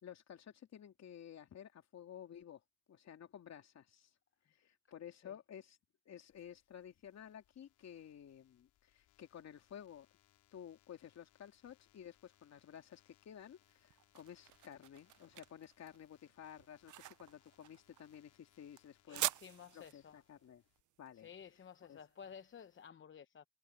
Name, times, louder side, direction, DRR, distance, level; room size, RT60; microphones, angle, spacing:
voice 1, 0.0-2.6 2.9-4.1 4.5-5.8 6.0-10.1 10.5-19.3 19.7-20.6 21.0-21.3 21.8-22.0, left 9 dB, 60° left, 3.0 m, -53 dB
sound 1, 6.3-20.8, left 13 dB, 85° left, 5.0 m, -74 dB
sound 2, 13.6-22.7, right 15 dB, 75° right, 0.7 m, -46 dB
voice 2, 19.1-20.2 21.1-23.5, left 7 dB, 40° left, 0.9 m, -54 dB
cardioid pair, 90°, 30 cm